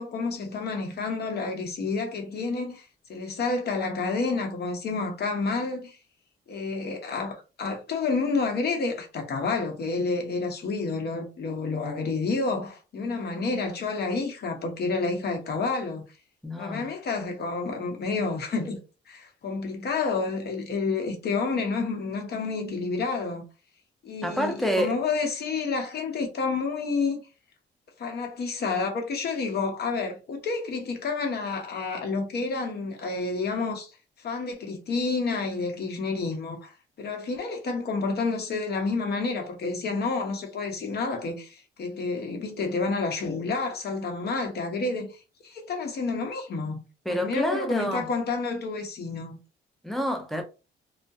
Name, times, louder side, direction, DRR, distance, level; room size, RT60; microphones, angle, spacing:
voice 1, 0.0-6.0 6.5-16.0 16.6-18.8 19.1-23.4 24.0-27.2 28.0-33.9 34.2-45.2 45.4-46.8 47.1-49.4, left 4 dB, 55° left, 0.8 m, -29 dB
voice 2, 16.4-16.9 24.2-25.0 47.1-48.1 49.8-50.4, equal, ahead, 0.5 m, -28 dB
2.3 x 2.1 x 2.6 m
cardioid pair, 90°, 20 cm